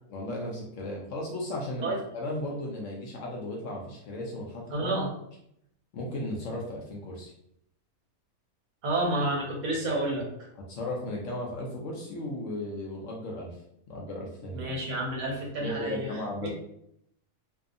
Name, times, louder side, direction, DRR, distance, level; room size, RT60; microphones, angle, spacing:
voice 1, 0.1-4.9 5.9-7.3 10.7-13.5 13.9-14.7 15.6-16.5, left 1 dB, 70° left, -2 dB, 0.9 m, -35 dB
voice 2, 4.7-5.1 8.8-10.3 14.5-16.5, right 2 dB, 45° right, -2 dB, 0.7 m, -30 dB
2.6 x 2.2 x 2.5 m, 0.75 s
omnidirectional pair, 1.5 m